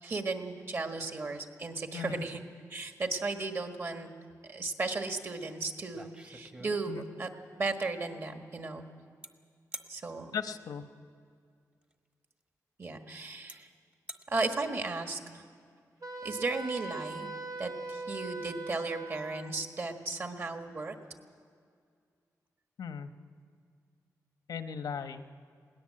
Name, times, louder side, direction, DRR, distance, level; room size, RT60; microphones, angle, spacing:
voice 1, 0.0-2.4 2.7-4.1 4.4-7.3 7.6-8.8 9.9-10.3 12.8-13.7 14.3-15.5 16.2-17.3 17.6-20.9, right 3 dB, 40° right, 5 dB, 1.6 m, -35 dB
voice 2, 1.9-2.2 6.9-7.0 10.3-10.8 22.8-23.1 24.5-25.3, left 7 dB, 90° left, 9 dB, 1.0 m, -37 dB
sound 1, 5.4-5.5 5.8-7.2 9.2-9.3 9.7-9.9 11.8-11.9 12.8-12.9 13.5-13.6 13.9-14.2, right 1 dB, 20° right, 1.1 m, -45 dB
Wind instrument woodwind instrument, 16.0-19.5, right 3 dB, 65° right, 3.2 m, -40 dB
21.0 x 18.0 x 7.6 m, 2.2 s
wide cardioid pair, 145°, 6 cm